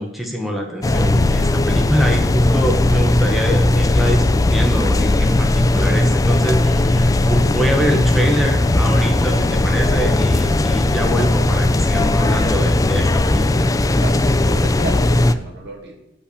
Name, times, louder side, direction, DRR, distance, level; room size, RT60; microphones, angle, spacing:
voice 1, 0.0-13.7, equal, ahead, 0 dB, 1.0 m, -24 dB
sound 1, 0.8-15.3, left 2 dB, 20° left, 0.3 m, -17 dB
voice 2, 14.0-15.9, right 2 dB, 60° right, 0 dB, 2.1 m, -32 dB
8.5 x 5.2 x 6.7 m, 0.93 s
head